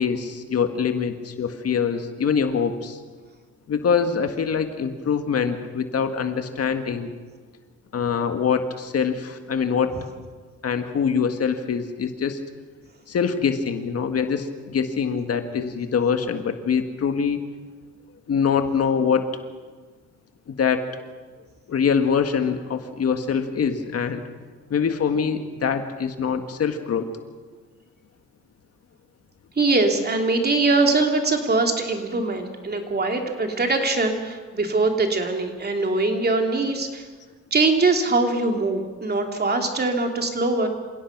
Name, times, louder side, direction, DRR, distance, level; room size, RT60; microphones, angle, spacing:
voice 1, 0.0-3.0 3.7-7.1 7.9-10.0 10.6-12.4 13.1-17.4 18.3-19.3 20.5-20.8 21.7-24.2 24.7-27.1, left 6 dB, 50° left, 7 dB, 1.8 m, -24 dB
voice 2, 29.6-37.0 37.5-40.7, right 3 dB, 35° right, 3 dB, 3.1 m, -22 dB
27.5 x 17.0 x 6.1 m, 1.4 s
cardioid pair, 90°, 30 cm